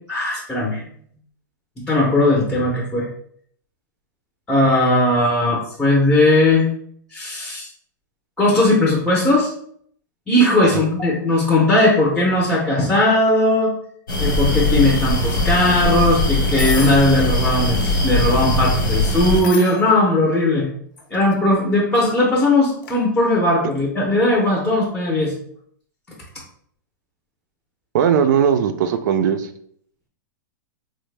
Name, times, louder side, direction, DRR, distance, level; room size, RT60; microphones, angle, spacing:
voice 1, 0.1-0.8 1.8-3.1 4.5-6.7 7.1-7.7 8.4-9.5 10.3-13.7 14.2-20.7 21.1-25.3, left 1 dB, 5° left, -3 dB, 0.6 m, -18 dB
sound 1, 14.1-19.4, left 2 dB, 85° left, 1.1 m, -20 dB
sound 2, 16.6-17.1 18.0-18.4 19.3-19.8 21.0-21.3 22.8-23.0, left 4 dB, 70° left, 0.6 m, -31 dB
voice 2, 27.9-29.5, right 8 dB, 65° right, 8 dB, 0.4 m, -18 dB
3.1 x 2.1 x 3.2 m, 0.63 s
hypercardioid pair, 140°, 11 cm